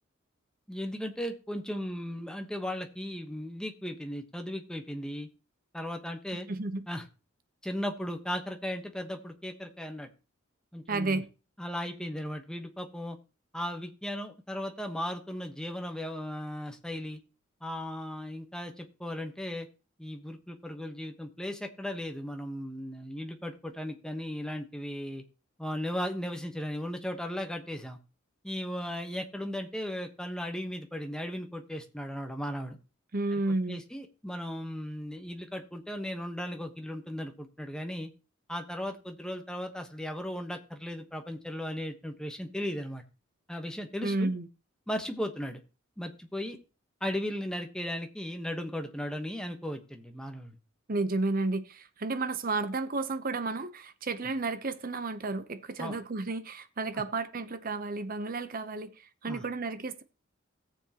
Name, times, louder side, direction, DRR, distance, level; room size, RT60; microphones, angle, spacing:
voice 1, 0.7-5.3 5.7-6.5 6.9-7.0 7.6-10.1 10.7-11.2 11.6-13.2 13.5-17.2 17.6-19.7 20.0-25.2 25.6-28.0 28.4-32.8 33.3-33.4 33.7-38.1 38.5-43.0 43.5-44.3 44.9-45.6 46.0-46.6 47.0-50.6 55.8-56.0 59.3-59.4, equal, 5° left, 1.1 m, -36 dB
voice 2, 6.5-6.8 10.9-11.3 33.1-33.8 44.0-44.5 50.9-60.0, right 3 dB, 45° right, 0.8 m, -32 dB
17.0 x 7.1 x 2.9 m
head